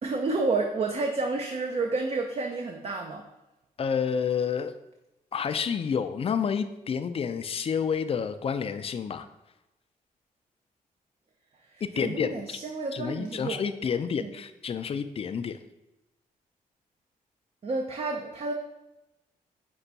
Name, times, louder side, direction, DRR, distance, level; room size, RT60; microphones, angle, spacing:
voice 1, 0.0-3.2 11.9-13.6 14.2-14.3 17.6-18.5, right 3 dB, 40° right, 2 dB, 0.5 m, -30 dB
voice 2, 3.8-4.7 5.3-9.3 12.0-12.6 12.9-15.6, left 6 dB, 40° left, 10 dB, 0.4 m, -29 dB
5.3 x 2.3 x 3.9 m, 0.97 s
cardioid pair, 65°, 16 cm